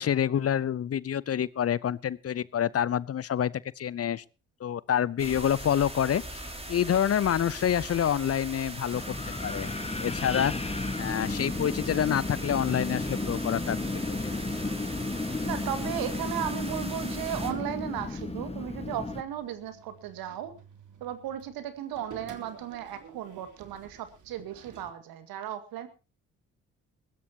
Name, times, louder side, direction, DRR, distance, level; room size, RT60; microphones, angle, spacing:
voice 1, 0.0-4.2 4.6-6.4 6.7-9.0 9.4-9.7 10.0-10.5 11.0-13.8 14.2-14.4, left 9 dB, 40° left, 0.7 m, -27 dB
sound 1, 5.2-17.5, right 1 dB, 15° right, 5.0 m, -40 dB
Wind, 8.9-19.2, left 3 dB, 15° left, 1.5 m, -33 dB
voice 2, 15.4-20.5 21.0-25.9, right 10 dB, 70° right, 2.1 m, -35 dB
sound 2, 17.2-24.9, right 6 dB, 55° right, 3.0 m, -50 dB
21.0 x 15.5 x 2.9 m
hypercardioid pair, 45°, 37 cm